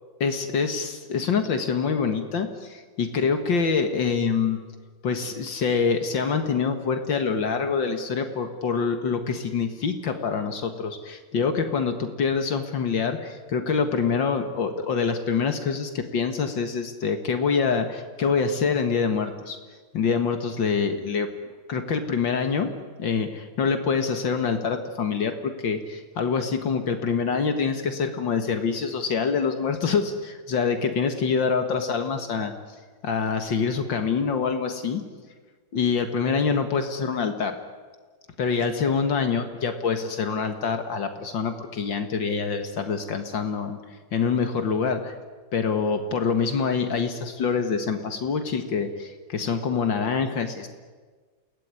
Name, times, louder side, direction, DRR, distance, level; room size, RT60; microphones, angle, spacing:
voice 1, 0.2-4.6 5.0-19.6 19.9-21.3 21.7-22.7 23.0-32.5 33.0-35.0 35.7-37.6 38.4-43.8 44.1-45.2 45.5-50.7, left 5 dB, 70° left, 7 dB, 2.4 m, -25 dB
29.0 x 18.0 x 9.8 m, 1.4 s
omnidirectional pair, 2.1 m